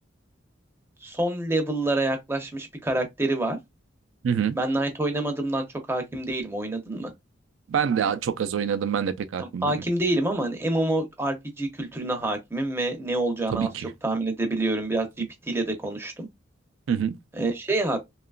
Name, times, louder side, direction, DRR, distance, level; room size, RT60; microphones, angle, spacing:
voice 1, 1.0-3.6 4.6-7.1 9.4-13.7 14.0-16.3 17.3-18.0, right 2 dB, 15° right, 0.5 m, -27 dB
voice 2, 4.2-4.6 7.7-9.7 13.5-13.9 16.9-17.2, right 7 dB, 80° right, 0.4 m, -26 dB
2.9 x 2.3 x 2.3 m
head